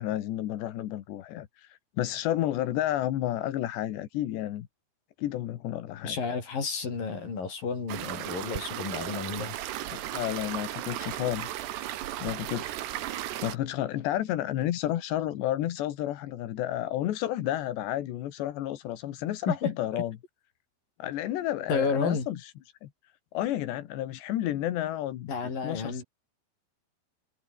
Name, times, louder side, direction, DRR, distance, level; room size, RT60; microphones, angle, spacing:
voice 1, 0.0-4.7 5.2-6.2 10.1-11.6 12.2-20.2 21.0-22.5 22.8-22.9 23.3-25.3 25.6-26.0, left 13 dB, 85° left, 3.8 m, -31 dB
voice 2, 6.0-9.6 19.5-20.0 21.7-22.3 25.3-26.0, left 5 dB, 55° left, 7.6 m, -31 dB
sound 1, 7.9-13.6, right 13 dB, 80° right, 3.6 m, -35 dB
omnidirectional pair, 4.9 m